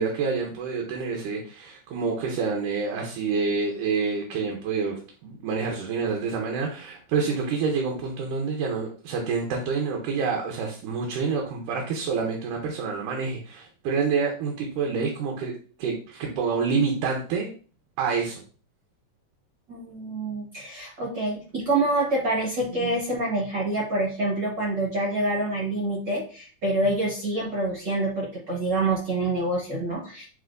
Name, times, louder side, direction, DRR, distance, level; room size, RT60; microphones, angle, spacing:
voice 1, 0.0-15.5 15.8-17.5 18.0-18.4, right 5 dB, 75° right, 0 dB, 2.3 m, -27 dB
voice 2, 19.7-30.3, right 2 dB, 55° right, -4 dB, 1.2 m, -26 dB
7.8 x 2.7 x 2.5 m, 0.40 s
omnidirectional pair, 3.8 m